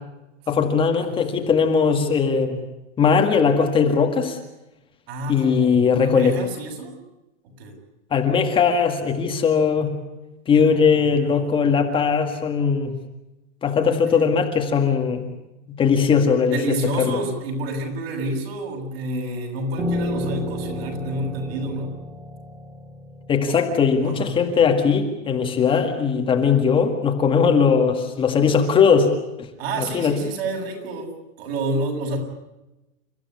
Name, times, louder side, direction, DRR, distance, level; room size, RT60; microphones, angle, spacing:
voice 1, 0.5-2.6 3.0-4.4 5.3-6.4 8.1-9.9 10.5-12.9 13.6-15.3 15.8-16.6 17.0-17.2 23.3-29.1 29.4-29.5 29.8-30.2, left 6 dB, 15° left, 4 dB, 1.9 m, -19 dB
voice 2, 5.1-6.9 7.6-7.8 10.5-11.8 13.7-14.3 16.5-21.9 23.4-23.6 24.0-24.3 29.6-31.1 31.4-32.2, right 2 dB, 55° right, 3 dB, 7.5 m, -29 dB
Piano, 19.8-25.1, left 1 dB, 10° right, 2.6 m, -32 dB
29.5 x 14.5 x 9.6 m, 0.98 s
supercardioid pair, 170°, 35 cm